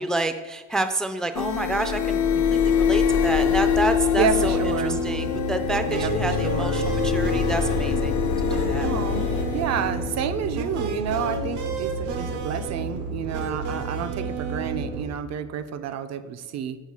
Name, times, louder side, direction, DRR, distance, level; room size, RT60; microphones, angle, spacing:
voice 1, 0.0-2.2 2.5-4.6 4.8-8.9, right 2 dB, ahead, 9 dB, 0.3 m, -29 dB
sound 1, 1.3-12.9, left 7 dB, 75° left, 0.7 m, -25 dB
voice 2, 4.1-5.0 5.9-6.9 8.8-16.8, right 8 dB, 60° right, 11 dB, 0.5 m, -29 dB
sound 2, 4.3-15.0, right 3 dB, 85° right, 0.9 m, -31 dB
5.7 x 3.9 x 4.7 m, 1.2 s
cardioid pair, 90°, 30 cm